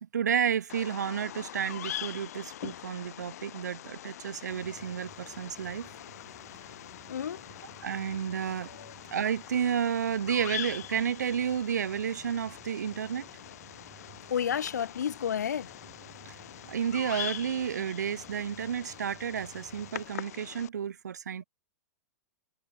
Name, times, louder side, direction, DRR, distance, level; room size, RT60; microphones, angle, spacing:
voice 1, 0.1-5.9 7.8-8.7 9.1-13.3 16.7-21.4, right 8 dB, 85° right, 0.6 m, -31 dB
Bird vocalization bird call bird song, 0.7-20.7, left 12 dB, 65° left, 0.9 m, -43 dB
sound 1, 4.5-20.1, right 17 dB, 35° right, 5.1 m, -57 dB
sound 2, 5.6-11.1, left 20 dB, 40° left, 5.0 m, -58 dB
voice 2, 7.1-7.4 8.7-8.9 14.3-15.7, left 8 dB, 85° left, 0.6 m, -31 dB
hypercardioid pair, 120°, 9 cm